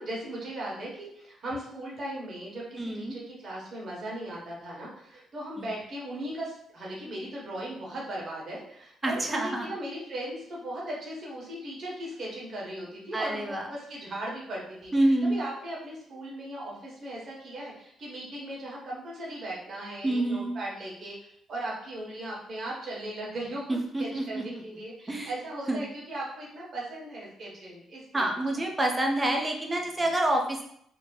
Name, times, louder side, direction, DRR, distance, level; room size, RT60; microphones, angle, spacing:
voice 1, 0.0-21.2 21.5-28.2 28.5-28.7, right 1 dB, 55° right, -4 dB, 1.2 m, -38 dB
voice 2, 2.8-3.1 5.6-5.7 9.0-9.7 13.1-13.7 14.9-15.4 20.0-20.5 23.7-24.6 25.1-25.3 25.7-25.8 28.1-30.6, right 1 dB, 20° right, 2 dB, 0.5 m, -27 dB
2.8 x 2.1 x 3.1 m, 0.70 s
cardioid pair, 90°, 0 cm